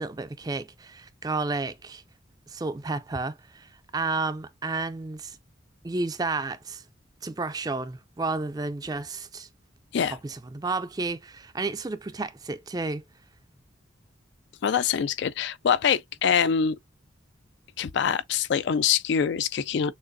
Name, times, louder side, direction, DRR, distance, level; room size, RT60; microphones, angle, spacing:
voice 1, 0.0-2.0 2.5-5.4 5.8-6.8 7.2-9.5 10.1-13.0, right 3 dB, 20° right, 0.4 m, -31 dB
voice 2, 14.6-16.8 17.8-19.9, left 7 dB, 65° left, 0.3 m, -24 dB
6.4 x 2.5 x 2.5 m
head